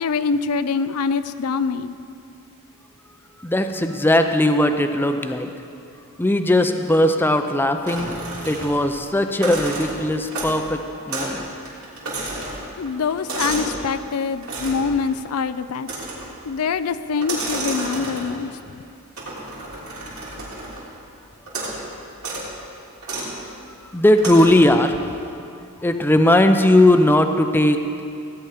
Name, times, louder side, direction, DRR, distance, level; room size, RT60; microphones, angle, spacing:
voice 1, 0.0-2.0 12.8-15.9 16.4-18.5, left 5 dB, 80° left, 12 dB, 0.5 m, -24 dB
voice 2, 3.4-5.5 6.2-8.2 8.5-11.5 23.9-25.1 25.8-28.0, left 1 dB, 10° left, 7 dB, 0.5 m, -18 dB
sound 1, 7.9-8.9 9.3-10.7 11.1-11.4 11.6-13.8 14.4-14.9 15.8-16.4 17.1-18.4 19.2-20.9 21.5-21.8 22.2-22.5 23.0-23.3 24.2-24.7, right 2 dB, 70° right, 3.4 m, -31 dB
17.0 x 9.3 x 5.0 m, 2.6 s
head